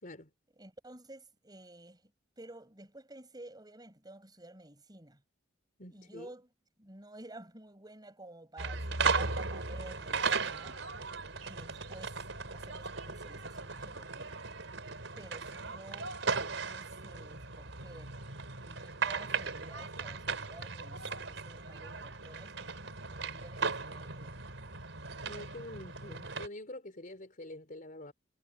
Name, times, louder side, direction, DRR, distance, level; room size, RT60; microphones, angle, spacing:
voice 1, 0.6-2.1 2.4-5.2 5.9-6.5 6.8-10.8 11.4-12.2 12.5-14.5 15.2-18.2 18.5-24.6, right 1 dB, 20° right, 7.1 m, -52 dB
voice 2, 5.8-6.3 25.2-28.1, left 1 dB, 45° left, 4.2 m, -46 dB
sound 1, 8.6-26.5, right 4 dB, 80° right, 4.4 m, -37 dB
head